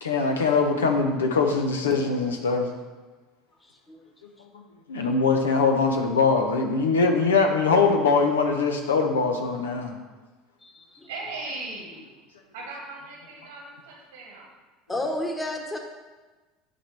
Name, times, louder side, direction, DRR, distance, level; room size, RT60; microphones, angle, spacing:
voice 1, 0.0-2.7 4.9-10.0, left 4 dB, 85° left, 4 dB, 0.7 m, -22 dB
voice 2, 3.6-4.0 10.6-11.1 14.9-15.8, left 1 dB, 15° left, 2 dB, 1.3 m, -32 dB
voice 3, 11.1-12.1 12.5-14.5, right 2 dB, 85° right, -2 dB, 1.5 m, -38 dB
10.0 x 4.4 x 3.3 m, 1.3 s
hypercardioid pair, 75°, 0 cm